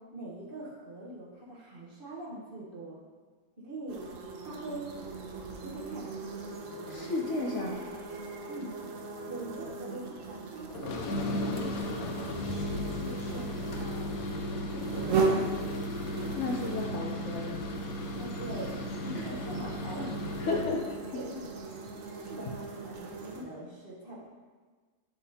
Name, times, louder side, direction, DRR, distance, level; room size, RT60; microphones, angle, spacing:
voice 1, 0.0-3.0 3.6-4.0 4.4-4.9 5.6-6.0 8.5-8.7 9.2-15.7 18.2-18.7 19.0-20.7 21.1-21.5 22.0-24.3, right 1 dB, 40° right, -6 dB, 1.3 m, -43 dB
sound 1, 3.9-23.4, right 4 dB, 70° right, 1.0 m, -38 dB
voice 2, 6.9-7.8 13.3-13.4 16.4-17.6 19.1-19.3 20.4-20.9, left 3 dB, 60° left, 0 dB, 1.0 m, -33 dB
sound 2, 10.7-20.8, left 1 dB, 90° left, 1.1 m, -35 dB
11.0 x 3.7 x 2.8 m, 1.4 s
omnidirectional pair, 1.5 m